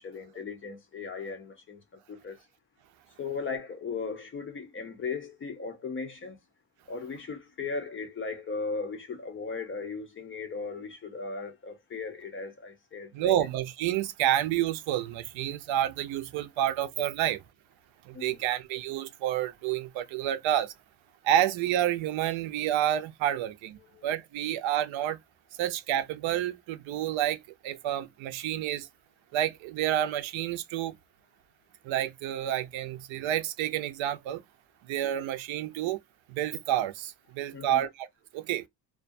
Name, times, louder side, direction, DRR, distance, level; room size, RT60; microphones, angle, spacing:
voice 1, 0.0-1.8 2.1-2.4 3.2-6.4 6.9-13.3 18.1-18.4 24.0-24.1 37.5-37.8, left 4 dB, 30° left, 0.4 m, -37 dB
voice 2, 13.1-17.4 18.0-20.7 21.2-25.2 25.6-28.9 29.3-30.9 31.8-34.4 34.8-36.0 36.3-38.1 38.3-38.6, right 11 dB, 75° right, 0.6 m, -29 dB
2.4 x 2.2 x 2.5 m
cardioid pair, 145°, 47 cm